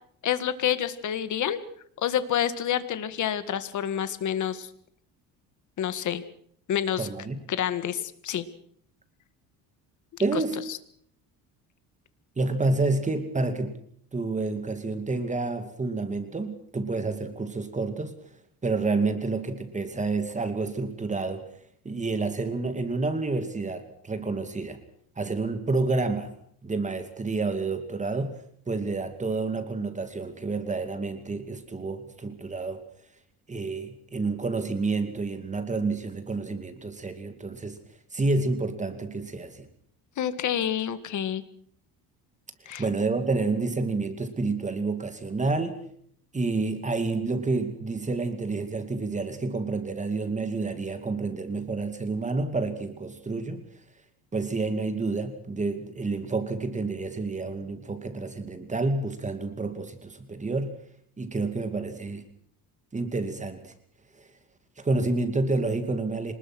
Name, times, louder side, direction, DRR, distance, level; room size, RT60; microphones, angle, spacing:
voice 1, 0.2-1.6 2.0-4.7 5.8-6.2 6.7-7.1 7.5-8.4 10.3-10.4 10.7-10.8 40.2-41.4 42.7-42.8, left 10 dB, 50° left, 12 dB, 1.9 m, -28 dB
voice 2, 7.0-7.4 10.2-10.6 12.4-13.8 14.1-18.2 18.6-21.5 21.8-24.8 25.2-26.3 26.6-28.4 28.7-32.8 33.5-37.8 38.1-39.7 42.8-45.8 46.3-53.6 54.3-60.8 61.2-62.2 62.9-63.7 64.2-64.3 64.8-66.3, right 3 dB, 20° right, 8 dB, 2.5 m, -29 dB
25.5 x 20.0 x 6.3 m, 0.64 s
cardioid pair, 125°, 38 cm